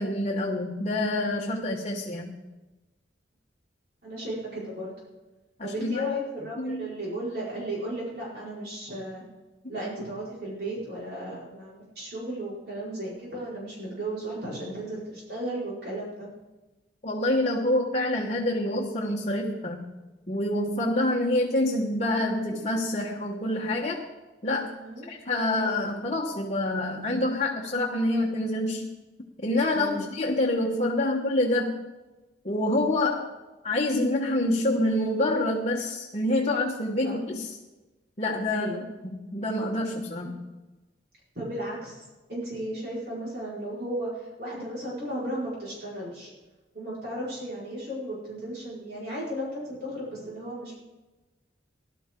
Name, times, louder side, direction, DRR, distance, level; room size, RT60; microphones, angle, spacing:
voice 1, 0.0-2.3 5.6-6.1 6.6-6.9 17.0-19.9 20.3-24.0 24.4-24.8 25.1-28.9 29.4-31.8 32.4-33.3 33.6-37.6 38.2-38.7 39.0-40.4, left 1 dB, 35° left, 0 dB, 1.2 m, -27 dB
voice 2, 4.0-4.9 5.6-9.2 9.7-16.3 24.8-25.1 29.7-30.1 37.0-37.2 38.5-38.8 41.3-46.3 46.7-50.8, right 1 dB, 55° right, -6 dB, 4.8 m, -35 dB
18.5 x 12.0 x 3.8 m, 1.1 s
head